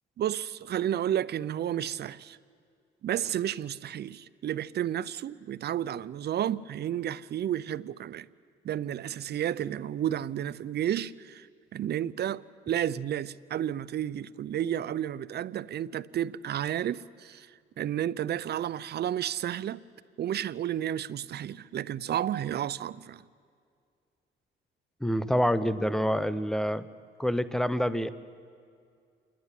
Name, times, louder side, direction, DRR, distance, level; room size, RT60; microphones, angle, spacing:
voice 1, 0.2-2.4 3.0-8.3 8.6-17.5 17.8-19.8 20.2-23.2, right 11 dB, 55° right, 0.6 m, -32 dB
voice 2, 25.0-26.8 27.2-28.1, equal, ahead, 0.8 m, -27 dB
28.5 x 11.0 x 9.9 m
cardioid pair, 90°, 20 cm